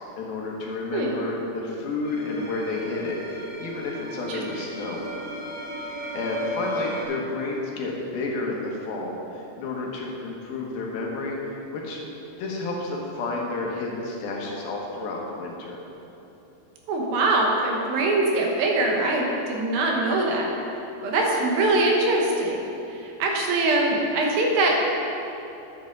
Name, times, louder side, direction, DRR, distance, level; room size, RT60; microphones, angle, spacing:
voice 1, 0.2-5.0 5.8-12.0 12.4-15.8, left 3 dB, 75° left, -2 dB, 3.1 m, -31 dB
voice 2, 0.9-1.2 4.2-4.4 16.9-20.5 21.0-24.8, right 2 dB, 75° right, 0 dB, 2.9 m, -23 dB
sound 1, 2.0-7.0, equal, 35° right, 1.3 m, -35 dB
12.0 x 8.6 x 3.9 m, 2.9 s
omnidirectional pair, 4.4 m